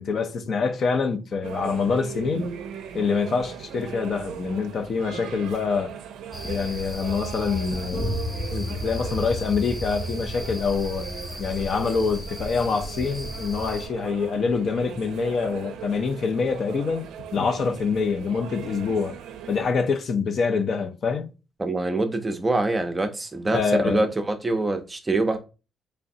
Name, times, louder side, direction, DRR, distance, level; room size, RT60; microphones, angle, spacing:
voice 1, 0.0-2.5 2.9-5.9 6.4-8.2 8.5-11.1 11.4-17.1 17.3-19.2 19.5-21.3 23.5-24.0, left 5 dB, 55° left, 0.5 m, -25 dB
sound 1, 1.4-19.7, right 8 dB, 85° right, 0.4 m, -39 dB
sound 2, 6.3-13.9, left 1 dB, 30° left, 1.0 m, -35 dB
sound 3, 8.0-13.5, left 1 dB, 70° left, 1.8 m, -36 dB
voice 2, 21.6-25.4, right 2 dB, 20° right, 0.5 m, -25 dB
3.8 x 3.3 x 2.6 m
cardioid pair, 90°, 0 cm